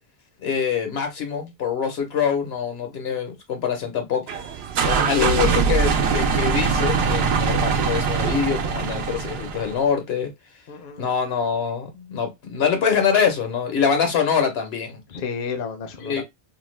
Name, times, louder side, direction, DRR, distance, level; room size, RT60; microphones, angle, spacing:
voice 1, 0.4-4.2 4.8-10.3 11.0-15.0 16.0-16.2, left 7 dB, 80° left, 1.1 m, -24 dB
sound 1, 4.3-9.8, right 6 dB, 90° right, 0.8 m, -22 dB
voice 2, 5.1-5.5 10.7-11.1 15.1-16.2, left 7 dB, 65° left, 0.7 m, -28 dB
2.7 x 2.2 x 3.1 m
omnidirectional pair, 1.0 m